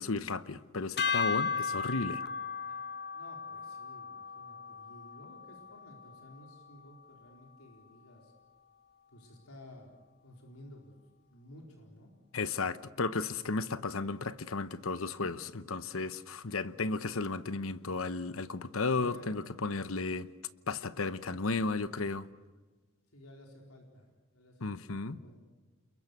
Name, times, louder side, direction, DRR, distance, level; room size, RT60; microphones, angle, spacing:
voice 1, 0.0-2.2 12.3-20.3 20.7-22.3 24.6-25.2, left 3 dB, 70° left, 1.0 m, -34 dB
sound 1, 1.0-7.3, left 5 dB, 50° left, 1.7 m, -36 dB
voice 2, 3.1-8.3 9.1-9.9 10.2-11.0 11.3-12.1 19.0-19.5 23.1-24.1 24.3-25.4, left 1 dB, 90° left, 4.3 m, -54 dB
28.5 x 22.0 x 8.2 m
head